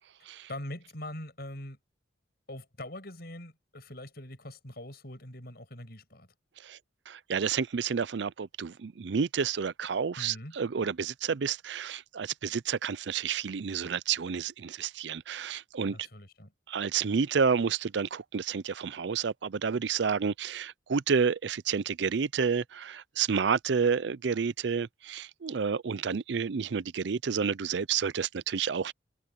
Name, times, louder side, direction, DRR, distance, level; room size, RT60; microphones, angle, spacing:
voice 1, 0.5-1.8 2.5-6.3 10.2-10.6 15.9-16.5, left 1 dB, 55° left, 6.7 m, -43 dB
voice 2, 7.1-16.0 16.7-28.9, right 6 dB, 70° right, 0.5 m, -30 dB
head